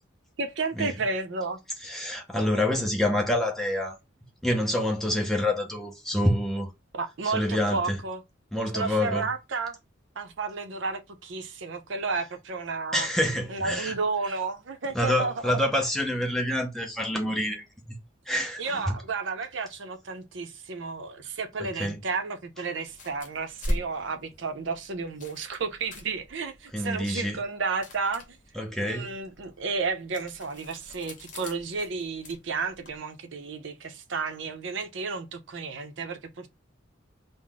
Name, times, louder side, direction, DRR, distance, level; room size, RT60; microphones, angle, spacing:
voice 1, 0.4-1.6 6.9-8.2 8.7-9.8 10.2-13.1 13.5-15.6 18.6-28.4 28.8-36.5, right 4 dB, 65° right, 0.6 m, -32 dB
voice 2, 1.8-4.0 4.4-6.7 7.2-8.0 8.5-9.3 12.9-13.9 14.9-18.0 18.3-18.6 21.8-22.0 26.7-27.4 28.6-29.1, left 1 dB, ahead, 0.7 m, -27 dB
sound 1, 22.9-33.0, equal, 40° left, 1.1 m, -40 dB
3.8 x 2.1 x 3.4 m
head